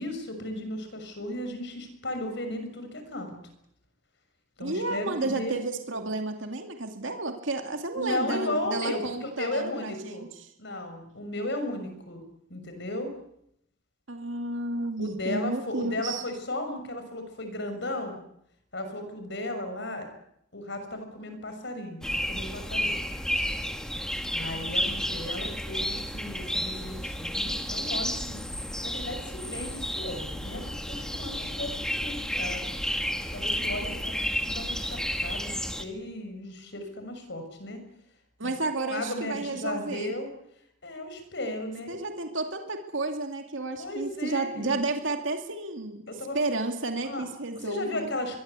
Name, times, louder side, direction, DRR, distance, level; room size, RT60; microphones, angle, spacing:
voice 1, 0.0-3.3 4.6-5.6 7.9-10.3 10.6-12.2 12.5-13.1 15.0-18.2 18.7-20.1 20.5-23.0 23.3-23.6 24.3-32.7 33.3-37.8 38.4-38.5 38.8-40.3 40.8-42.0 43.8-44.8 46.1-46.4 47.0-47.2 47.5-48.4, left 1 dB, 60° left, 7 dB, 6.4 m, -35 dB
voice 2, 4.6-10.3 14.1-16.2 38.4-40.1 41.9-46.0 46.3-48.1, right 2 dB, 70° right, 4 dB, 2.5 m, -31 dB
sound 1, 22.0-35.8, equal, 5° left, 1.9 m, -31 dB
23.5 x 23.0 x 8.3 m, 0.76 s
head